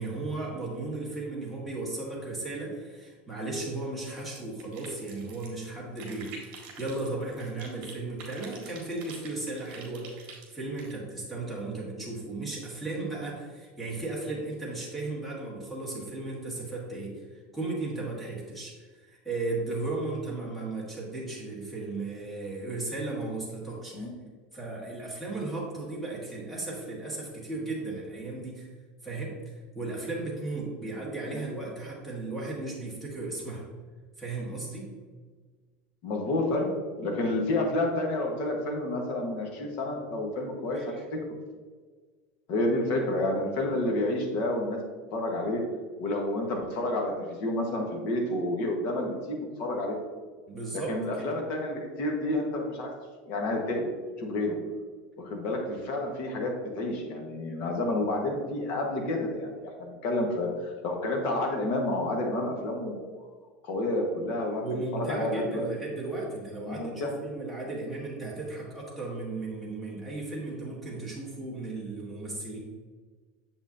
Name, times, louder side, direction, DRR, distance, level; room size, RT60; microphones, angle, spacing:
voice 1, 0.0-24.1 24.5-28.7 29.0-29.4 29.7-33.6 34.2-34.9 40.7-41.0 50.5-51.3 64.6-72.6, right 2 dB, ahead, -5 dB, 1.4 m, -35 dB
sound 1, 4.0-5.6 6.0-7.9 8.2-10.9, right 4 dB, 40° right, 1.7 m, -47 dB
voice 2, 36.0-36.7 37.0-40.8 41.1-41.2 42.5-44.8 45.1-45.6 46.0-49.9 50.7-52.9 53.2-53.9 54.2-54.5 55.2-63.1 63.6-64.6 64.9-65.7 66.6-67.1, left 1 dB, 40° left, 1 dB, 1.2 m, -30 dB
7.1 x 5.5 x 2.7 m, 1.4 s
supercardioid pair, 175°, 5 cm